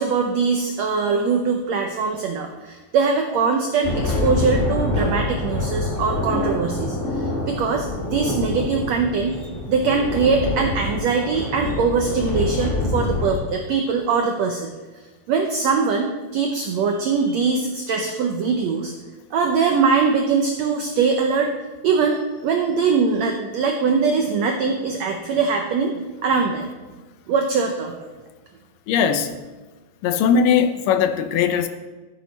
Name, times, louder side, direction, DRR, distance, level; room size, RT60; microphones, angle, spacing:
voice 1, 0.0-14.7 15.3-18.9 19.3-21.5 21.8-26.7 27.3-28.1, right 5 dB, 90° right, 3 dB, 1.5 m, -22 dB
sound 1, 3.8-13.3, left 2 dB, 25° left, 1.7 m, -26 dB
voice 2, 28.9-29.3 30.0-31.7, left 7 dB, 80° left, 9 dB, 2.2 m, -19 dB
13.5 x 8.0 x 4.1 m, 1.3 s
omnidirectional pair, 4.1 m